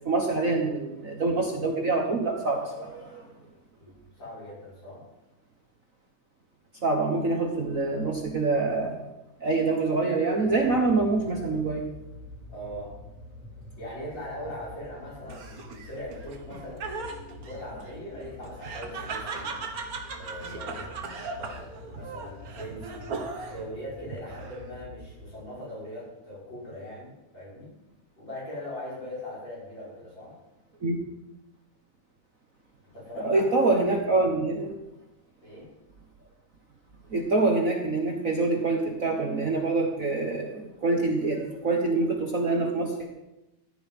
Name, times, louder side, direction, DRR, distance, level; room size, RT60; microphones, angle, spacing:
voice 1, 0.0-3.2 6.8-9.0 9.4-11.8 30.8-31.0 33.2-34.7 37.1-43.1, right 3 dB, 90° right, 1 dB, 0.7 m, -25 dB
voice 2, 3.8-5.0 12.5-12.9 13.8-19.6 20.1-23.2 23.5-27.7 28.2-30.4 32.9-33.4 35.4-35.7, left 1 dB, 35° left, -6 dB, 7.1 m, -41 dB
sound 1, 10.3-25.6, left 1 dB, 70° left, 5.3 m, -47 dB
Laughter, 15.3-23.7 24.1-24.8, right 4 dB, 50° right, 1.0 m, -38 dB
15.0 x 11.0 x 5.6 m, 0.97 s
omnidirectional pair, 3.7 m